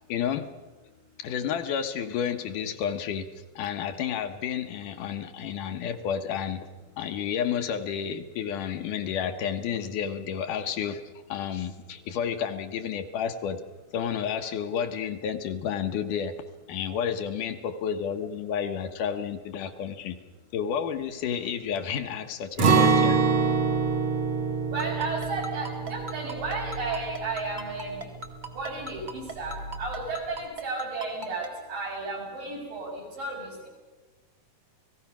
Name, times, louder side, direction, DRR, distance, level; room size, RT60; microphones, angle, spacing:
voice 1, 0.1-0.5 1.2-3.3 3.6-6.7 7.0-11.0 11.3-13.6 13.9-16.3 16.7-20.2 20.5-23.2, left 8 dB, 70° left, 7 dB, 2.3 m, -31 dB
Acoustic guitar, 22.6-28.5 28.8-29.0 29.4-29.9, right 5 dB, 55° right, 3.1 m, -26 dB
voice 2, 24.7-28.0 28.5-33.7, right 3 dB, 70° right, -2 dB, 8.3 m, -33 dB
Ringtone, 24.8-31.5, right 3 dB, 30° right, 0.8 m, -37 dB
29.0 x 18.5 x 5.9 m, 1.2 s
omnidirectional pair, 4.0 m